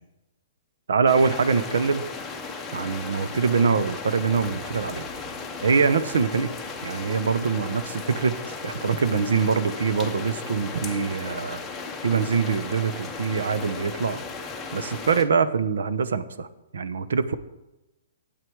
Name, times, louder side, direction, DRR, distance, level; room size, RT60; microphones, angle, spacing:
voice 1, 0.9-2.0 2.7-5.1 5.6-6.5 6.8-11.6 12.0-14.2 14.7-16.5 16.7-17.4, right 5 dB, 90° right, 12 dB, 0.9 m, -24 dB
sound 1, 1.1-15.3, left 4 dB, 5° left, 0.7 m, -36 dB
12.5 x 8.6 x 4.7 m, 0.99 s
hypercardioid pair, 175°, 0 cm